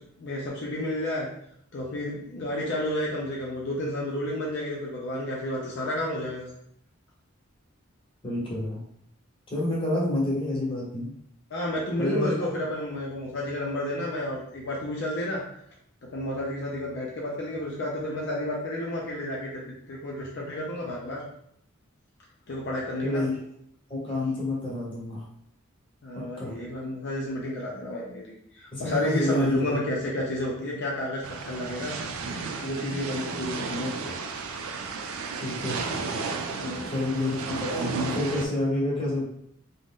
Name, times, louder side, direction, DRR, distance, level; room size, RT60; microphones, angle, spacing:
voice 1, 0.2-1.3 1.7-6.5 11.5-15.4 16.1-21.2 22.5-23.2 26.0-31.9 32.6-34.1 36.6-37.1, left 1 dB, 55° left, -4 dB, 0.5 m, -31 dB
voice 2, 8.2-8.8 9.5-11.1 12.0-12.3 23.0-23.4 23.9-25.2 26.1-26.5 28.7-29.9 35.4-35.8 36.9-39.3, left 1 dB, 25° left, -5 dB, 0.8 m, -28 dB
sound 1, 31.2-38.5, right 4 dB, 85° right, 0.3 m, -33 dB
2.5 x 2.0 x 3.5 m, 0.71 s
head